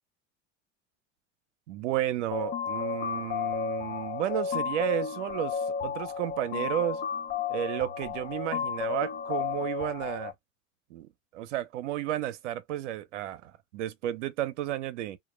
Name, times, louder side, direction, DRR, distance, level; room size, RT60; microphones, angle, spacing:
voice 1, 1.7-7.0 7.5-10.3 10.9-15.2, right 13 dB, 90° right, 0.5 m, -32 dB
sound 1, 2.3-10.3, left 7 dB, 35° left, 0.5 m, -32 dB
2.2 x 2.1 x 3.1 m
supercardioid pair, 95°, 35 cm